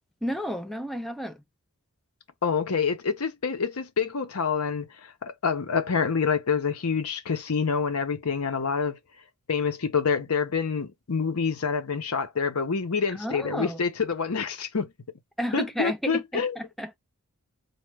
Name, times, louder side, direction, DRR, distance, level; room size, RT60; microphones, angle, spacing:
voice 1, 0.2-1.4 13.1-13.8 15.4-17.0, equal, ahead, 0.4 m, -32 dB
voice 2, 2.4-9.0 9.5-14.9 15.5-16.6, left 5 dB, 85° left, 0.8 m, -27 dB
4.2 x 2.2 x 3.3 m
head